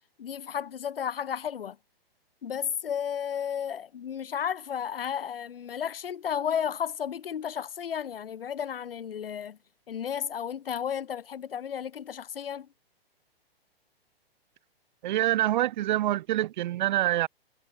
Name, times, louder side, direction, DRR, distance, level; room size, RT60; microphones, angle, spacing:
voice 1, 0.2-1.8 2.4-9.6 9.9-12.7, left 8 dB, 65° left, 2.9 m, -33 dB
voice 2, 15.0-17.3, right 14 dB, 50° right, 2.8 m, -26 dB
figure-of-eight pair, 120°, 31 cm